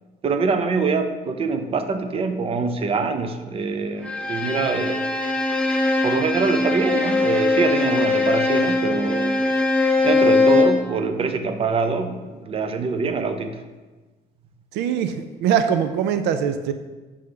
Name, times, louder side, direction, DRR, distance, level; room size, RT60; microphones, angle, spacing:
voice 1, 0.2-5.0 6.0-9.4 10.0-13.6, right 4 dB, 35° right, 8 dB, 0.5 m, -24 dB
Bowed string instrument, 4.0-10.9, left 3 dB, 5° left, 0.7 m, -21 dB
voice 2, 14.7-16.7, right 8 dB, 85° right, 9 dB, 0.4 m, -22 dB
6.6 x 3.4 x 5.2 m, 1.3 s
cardioid pair, 110°, 17 cm